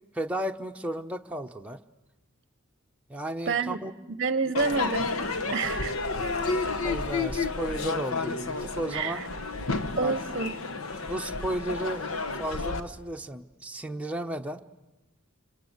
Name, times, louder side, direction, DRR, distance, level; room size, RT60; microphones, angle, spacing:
voice 1, 0.1-1.8 3.1-3.9 6.8-9.2 10.0-10.2 11.0-12.0 12.3-14.6, right 1 dB, 5° right, 4 dB, 0.9 m, -34 dB
voice 2, 3.5-3.8 4.1-5.1 5.5-6.0 8.9-9.2 10.0-10.6, right 4 dB, 40° right, 13 dB, 0.8 m, -28 dB
Crowd / Fireworks, 4.5-12.8, left 3 dB, 85° left, 1.3 m, -31 dB
26.5 x 26.5 x 8.1 m, 1.1 s
head